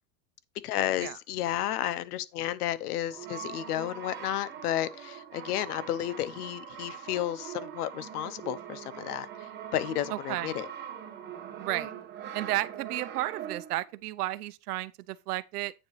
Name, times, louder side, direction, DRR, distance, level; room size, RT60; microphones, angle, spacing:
voice 1, 0.6-9.3 9.7-10.7, left 12 dB, 85° left, 0.9 m, -32 dB
Brass instrument, 3.1-13.9, right 9 dB, 25° right, 1.4 m, -42 dB
voice 2, 10.1-10.5 11.6-11.9 12.3-15.7, right 17 dB, 85° right, 0.8 m, -33 dB
8.8 x 7.2 x 3.2 m
supercardioid pair, 165°, 45 cm